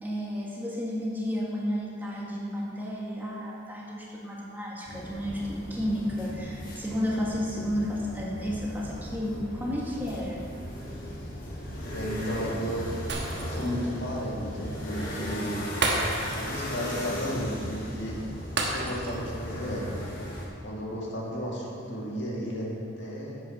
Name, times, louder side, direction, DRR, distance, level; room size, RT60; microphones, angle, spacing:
voice 1, 0.0-10.4, equal, 10° right, -4 dB, 1.3 m, -32 dB
sound 1, 4.9-20.5, equal, 45° left, 1.6 m, -37 dB
voice 2, 11.7-12.9 13.4-15.7 16.4-18.2 18.6-19.9 20.6-23.4, equal, 60° left, -3 dB, 1.9 m, -33 dB
Shatter, 13.1-13.8 14.2-14.3 15.8-16.6 16.9-17.0 18.6-19.3 19.6-19.8, right 2 dB, 55° right, 1.3 m, -30 dB
8.5 x 7.8 x 5.6 m, 2.6 s
head